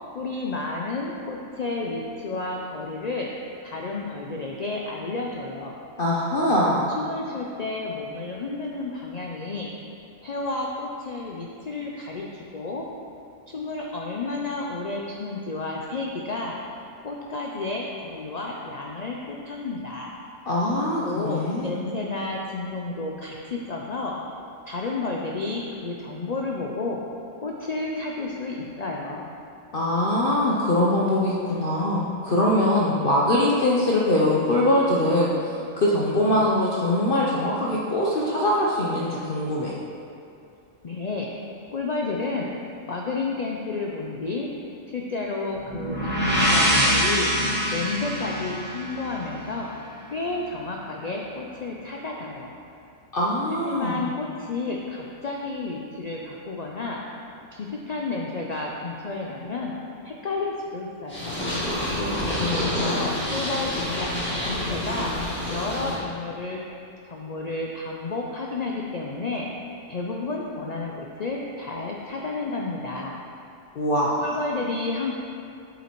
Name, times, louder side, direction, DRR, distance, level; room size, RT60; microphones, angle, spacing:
voice 1, 0.1-3.3 3.6-5.7 7.0-9.7 10.2-12.9 13.5-16.6 17.0-20.2 21.0-24.2 24.6-27.0 27.4-29.3 40.8-41.3 41.7-42.5 42.9-44.5 44.9-47.3 47.7-49.7 50.1-52.5 53.5-57.0 57.5-59.7 60.0-61.4 62.4-65.1 65.5-66.6 67.0-69.5 69.9-73.1 74.2-75.1, left 3 dB, 75° left, -1 dB, 0.3 m, -31 dB
voice 2, 6.0-6.9 20.5-21.7 29.7-39.7 53.1-54.1 61.8-62.9 73.8-74.3, left 1 dB, 50° left, -4 dB, 0.7 m, -23 dB
sound 1, 45.7-49.5, equal, 10° right, 0.9 m, -24 dB
Purr, 61.1-66.0, left 1 dB, 10° left, 1.6 m, -28 dB
8.2 x 5.6 x 3.0 m, 2.5 s
omnidirectional pair, 1.4 m